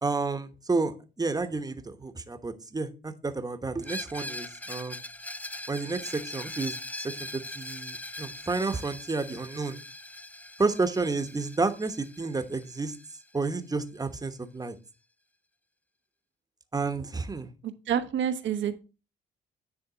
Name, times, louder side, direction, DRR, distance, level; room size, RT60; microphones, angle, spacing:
voice 1, 0.0-5.0 5.7-6.7 7.0-9.8 10.6-12.9 13.3-14.7 16.7-17.5, right 3 dB, 20° right, 8 dB, 1.0 m, -31 dB
Screech, 3.8-13.5, left 1 dB, 10° left, 0.5 m, -41 dB
voice 2, 17.6-18.8, right 9 dB, 70° right, 10 dB, 1.0 m, -28 dB
9.9 x 3.6 x 4.9 m, 0.32 s
cardioid pair, 90°, 20 cm